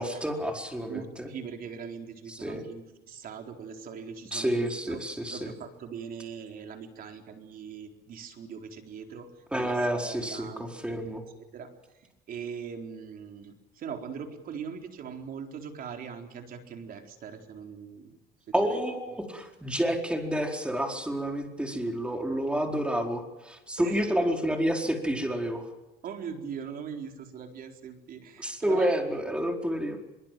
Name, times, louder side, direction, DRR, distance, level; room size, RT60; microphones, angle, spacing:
voice 1, 0.0-1.3 2.3-2.7 4.3-5.5 9.5-11.2 18.5-25.6 28.4-30.0, equal, 5° right, 3 dB, 4.5 m, -29 dB
voice 2, 0.9-5.0 5.3-11.7 12.0-18.2 18.7-18.8 23.8-24.2 26.0-28.9, right 6 dB, 60° right, 4 dB, 4.2 m, -41 dB
24.5 x 23.0 x 7.7 m, 1.0 s
cardioid pair, 110°, 17 cm